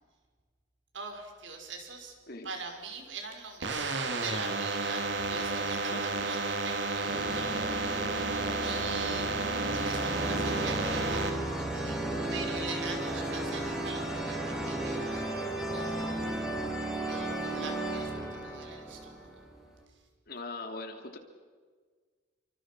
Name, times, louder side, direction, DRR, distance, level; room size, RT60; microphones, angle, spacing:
voice 1, 0.9-2.1 2.4-8.3 8.6-9.3 9.7-15.3 15.7-16.3 17.0-19.3, right 4 dB, 90° right, 3 dB, 5.7 m, -43 dB
sound 1, 3.6-11.3, right 3 dB, 70° right, 2.8 m, -32 dB
sound 2, 5.2-6.4 7.0-19.6, right 1 dB, 5° right, 4.5 m, -35 dB
voice 2, 5.9-6.3 20.3-21.2, left 3 dB, 55° left, 5 dB, 2.8 m, -41 dB
30.0 x 25.5 x 6.2 m, 1.5 s
head